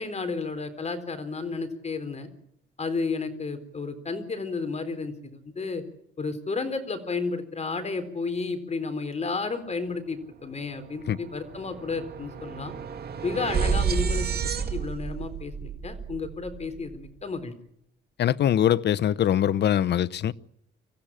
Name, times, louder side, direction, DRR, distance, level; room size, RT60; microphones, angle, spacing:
voice 1, 0.0-2.3 2.8-5.8 6.2-12.7 13.2-14.3 14.7-17.5, left 4 dB, 35° left, 4.0 m, -32 dB
sound 1, 10.4-10.5 10.8-17.1, right 6 dB, 55° right, 2.2 m, -31 dB
voice 2, 18.2-20.3, left 10 dB, 60° left, 0.8 m, -22 dB
25.0 x 15.5 x 8.8 m
cardioid pair, 90°, 20 cm